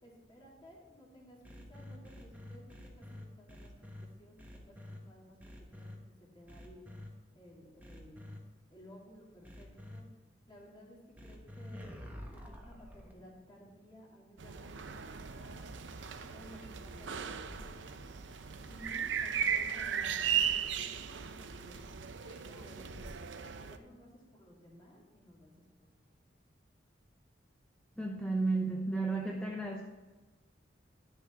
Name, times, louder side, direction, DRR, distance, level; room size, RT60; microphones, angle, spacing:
voice 1, 0.0-6.9 7.3-8.2 8.7-10.1 10.5-15.7 16.1-17.8 18.6-20.5 20.7-21.8 22.3-23.3 23.6-25.5 26.1-26.2, equal, 25° left, -4 dB, 2.9 m, -56 dB
sound 1, 1.4-4.0 4.4-5.0 5.4-5.9 6.5-7.1 7.8-8.4 9.4-10.0 11.2-13.1, left 1 dB, 10° right, 1.3 m, -48 dB
sound 2, 14.4-23.8, right 8 dB, 85° right, 0.6 m, -37 dB
sound 3, 15.0-17.1 17.4-22.4 22.9-23.6, equal, 85° left, 2.2 m, -57 dB
voice 2, 28.0-29.8, right 3 dB, 5° left, 0 dB, 0.7 m, -33 dB
10.5 x 7.1 x 4.5 m, 1.2 s
head